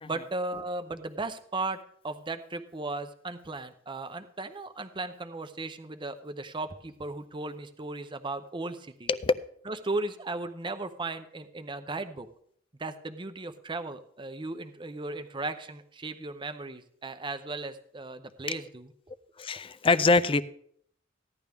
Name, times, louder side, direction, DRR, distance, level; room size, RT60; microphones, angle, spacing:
voice 1, 0.1-9.1 9.7-12.3 12.8-18.9, right 2 dB, 25° right, 9 dB, 0.7 m, -36 dB
voice 2, 19.4-20.4, left 3 dB, 30° left, 15 dB, 0.5 m, -24 dB
15.5 x 11.0 x 3.5 m, 0.66 s
head